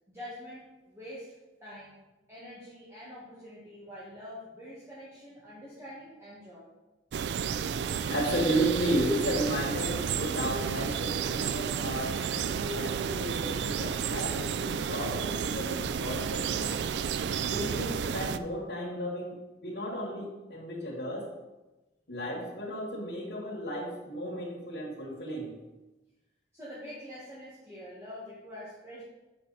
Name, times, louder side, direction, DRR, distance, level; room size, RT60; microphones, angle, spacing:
voice 1, 0.1-1.3 1.6-2.0 2.3-6.7 26.5-29.0, left 1 dB, 15° right, -9 dB, 1.7 m, -45 dB
sound 1, 7.1-18.4, right 7 dB, 70° right, 0.3 m, -32 dB
voice 2, 8.1-16.8 17.5-19.3 19.6-21.3 22.1-25.5, equal, 85° left, -5 dB, 1.8 m, -33 dB
7.8 x 5.8 x 4.2 m, 1.1 s
head